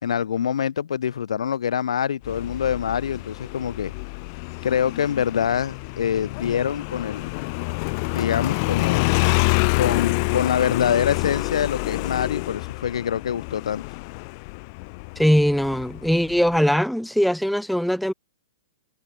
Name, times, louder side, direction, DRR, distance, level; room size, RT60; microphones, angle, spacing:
voice 1, 0.0-3.9 4.6-7.3 8.1-9.1 9.8-13.8, left 8 dB, 75° left, 4.2 m, -25 dB
Motorcycle, 2.2-16.6, left 31 dB, 45° left, 2.3 m, -27 dB
voice 2, 15.2-18.1, equal, ahead, 0.6 m, -21 dB
hypercardioid pair, 125°, 3 cm